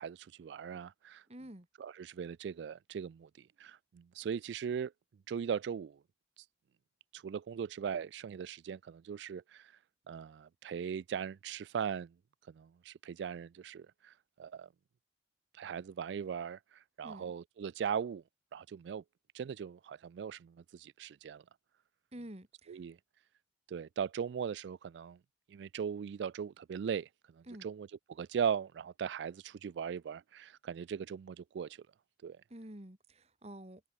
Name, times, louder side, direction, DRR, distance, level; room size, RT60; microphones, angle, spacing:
voice 1, 0.0-1.3 1.8-4.9 5.3-6.0 6.4-6.5 7.1-9.8 10.1-12.1 12.5-14.7 15.5-18.2 18.5-19.0 19.3-21.4 22.7-23.0 23.7-25.2 25.5-27.1 27.4-31.8 32.2-32.4, right 7 dB, 75° right, 0.3 m, -39 dB
voice 2, 1.3-1.7 17.0-17.3 22.1-22.8 27.4-27.7 32.5-33.8, right 1 dB, 35° right, 2.4 m, -49 dB
head